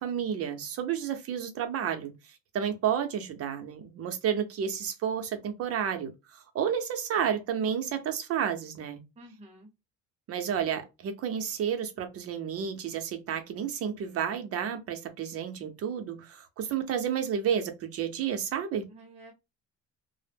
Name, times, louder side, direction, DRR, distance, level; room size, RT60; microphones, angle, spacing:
voice 1, 0.0-2.1 2.5-9.0 10.3-18.9, right 8 dB, 50° right, 0.7 m, -31 dB
voice 2, 9.2-9.7 18.9-19.3, right 1 dB, 20° right, 0.8 m, -50 dB
2.0 x 2.0 x 3.3 m
cardioid pair, 130°, 29 cm